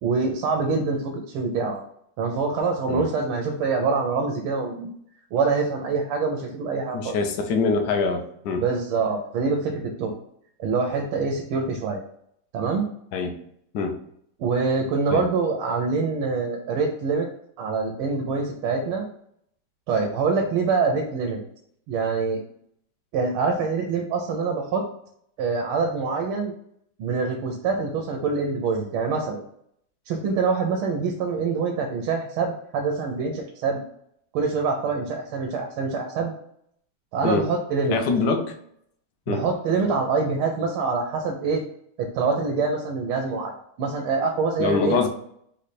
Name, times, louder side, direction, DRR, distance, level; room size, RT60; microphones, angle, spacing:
voice 1, 0.0-1.8 2.2-4.9 5.3-7.2 8.6-10.1 10.6-12.0 12.5-12.9 14.4-17.3 17.6-19.0 19.9-21.4 21.9-22.4 23.1-24.8 25.4-26.5 27.0-29.4 30.1-33.8 34.3-36.3 37.1-38.0 39.3-41.6 42.0-45.1, right 4 dB, 90° right, 2 dB, 1.6 m, -25 dB
voice 2, 6.9-8.6 13.1-13.4 13.7-14.0 15.1-15.3 37.2-37.5 37.9-38.5 39.3-39.4 44.6-45.1, left 4 dB, 65° left, 4 dB, 1.2 m, -24 dB
3.9 x 3.3 x 4.1 m, 0.70 s
omnidirectional pair, 2.3 m